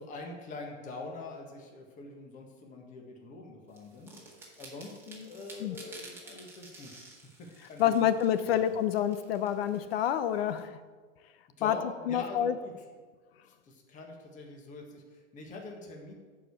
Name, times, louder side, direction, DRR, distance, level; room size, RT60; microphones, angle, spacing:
voice 1, 0.0-7.1 7.4-8.1 8.4-8.7 11.6-12.7 13.6-16.1, left 3 dB, 20° left, 1 dB, 1.6 m, -44 dB
sound 1, 3.7-10.6, right 2 dB, 5° right, 1.7 m, -52 dB
voice 2, 7.8-10.8 11.6-11.8 12.1-12.5, left 10 dB, 50° left, 12 dB, 0.8 m, -27 dB
11.0 x 5.0 x 7.1 m, 1.5 s
supercardioid pair, 155°, 37 cm